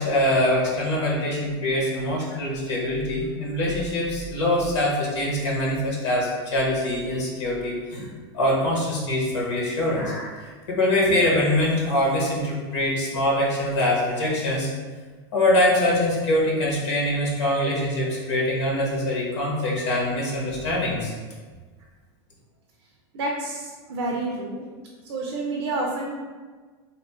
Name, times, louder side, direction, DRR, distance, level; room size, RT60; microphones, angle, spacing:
voice 1, 0.0-8.1 8.3-14.7 15.3-21.1, left 1 dB, 85° left, -4 dB, 1.1 m, -24 dB
voice 2, 23.1-24.6 25.1-26.2, right 2 dB, 75° right, -1 dB, 0.5 m, -29 dB
3.0 x 2.3 x 3.5 m, 1.4 s
supercardioid pair, 135°, 14 cm